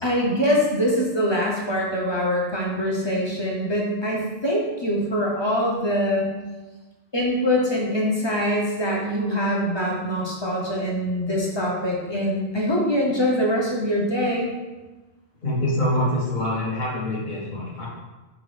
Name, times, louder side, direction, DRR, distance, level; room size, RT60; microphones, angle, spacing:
voice 1, 0.0-6.3 7.1-14.5, equal, 30° left, -2 dB, 0.6 m, -23 dB
voice 2, 15.4-17.9, left 1 dB, 50° left, -4 dB, 1.1 m, -25 dB
4.9 x 2.6 x 3.2 m, 1.2 s
omnidirectional pair, 1.0 m